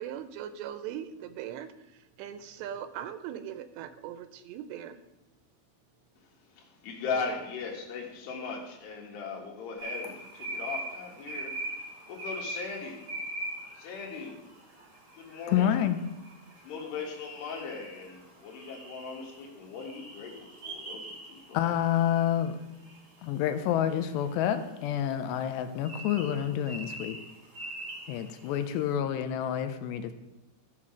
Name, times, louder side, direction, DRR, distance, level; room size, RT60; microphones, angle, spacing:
voice 1, 0.0-5.0, right 10 dB, 85° right, 11 dB, 2.8 m, -40 dB
voice 2, 6.2-13.1 13.7-14.4 15.2-15.8 16.6-21.6, left 5 dB, 70° left, -2 dB, 3.8 m, -39 dB
sound 1, 9.8-28.8, right 2 dB, 35° right, 1.7 m, -42 dB
voice 3, 15.5-16.0 21.5-22.5 23.2-27.2 28.1-30.1, left 10 dB, 90° left, 9 dB, 2.9 m, -28 dB
14.0 x 5.8 x 6.2 m, 1.0 s
omnidirectional pair, 5.0 m